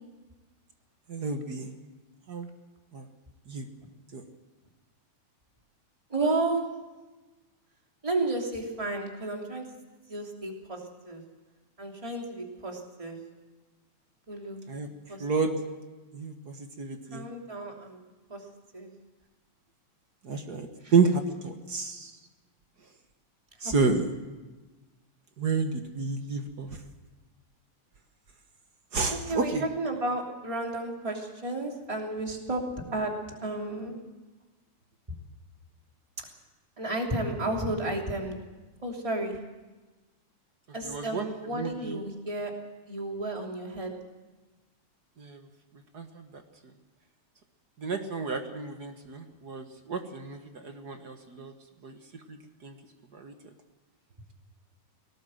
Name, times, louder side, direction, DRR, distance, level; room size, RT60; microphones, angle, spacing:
voice 1, 1.1-1.7 2.3-2.5 2.9-3.1 3.5-3.7 4.1-4.2 14.7-14.9 15.2-15.6 16.1-17.3 20.2-22.1 23.6-24.1 25.4-26.7 28.9-29.6 40.8-42.0 45.2-45.4 45.9-46.4 47.8-51.5 51.8-52.0 52.3-52.4 52.6-52.7 53.1-53.3, right 4 dB, 45° right, 6 dB, 1.3 m, -30 dB
voice 2, 6.1-6.6 8.0-9.7 10.1-11.2 11.8-13.2 14.3-14.6 15.1-15.3 17.1-18.0 18.3-18.4 18.7-18.9 20.8-20.9 23.6-23.7 29.1-32.6 32.9-33.1 33.4-34.0 36.8-38.4 38.8-39.4 40.7-42.5 42.8-43.9, right 2 dB, 10° right, 1 dB, 2.7 m, -32 dB
20.5 x 18.0 x 7.7 m, 1.2 s
omnidirectional pair, 3.5 m